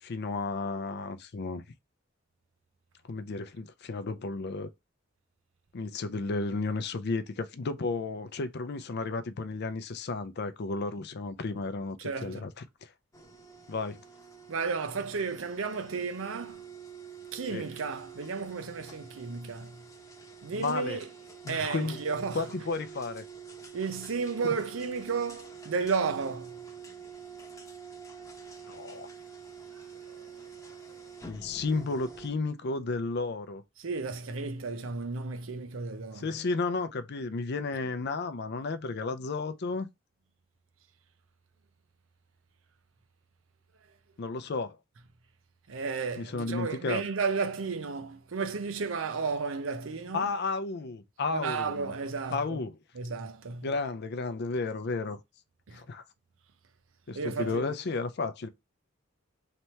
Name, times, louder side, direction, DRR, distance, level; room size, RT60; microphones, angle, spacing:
voice 1, 0.0-1.7 3.1-4.7 5.7-12.0 12.2-12.5 12.8-12.9 13.7-14.0 17.5-17.6 20.5-21.0 21.4-22.0 22.3-23.2 24.4-24.5 28.7-29.1 31.3-33.6 36.1-39.9 44.2-44.8 46.2-47.0 50.1-51.9 52.3-52.8 53.6-55.2 55.7-56.0 57.1-58.5, left 3 dB, 55° left, 0.5 m, -33 dB
voice 2, 12.0-12.5 14.5-16.7 17.3-19.8 20.4-21.1 21.5-22.5 23.7-26.6 30.1-30.3 33.8-36.3 45.7-50.3 51.3-52.6 52.9-53.7 55.7-55.8 57.1-57.7, right 5 dB, 65° right, 0.6 m, -33 dB
sound 1, 13.1-32.3, right 6 dB, 15° left, 0.9 m, -47 dB
3.3 x 2.9 x 4.3 m
head